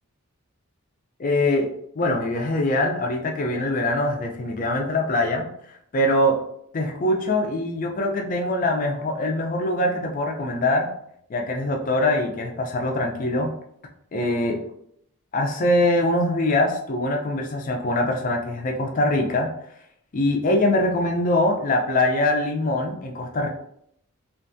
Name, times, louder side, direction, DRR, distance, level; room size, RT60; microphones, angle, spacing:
voice 1, 1.2-5.5 5.9-6.4 6.7-10.9 11.3-13.5 14.1-14.6 15.3-19.5 20.1-23.5, left 1 dB, 35° left, 2 dB, 0.4 m, -23 dB
2.5 x 2.3 x 2.6 m, 0.70 s
head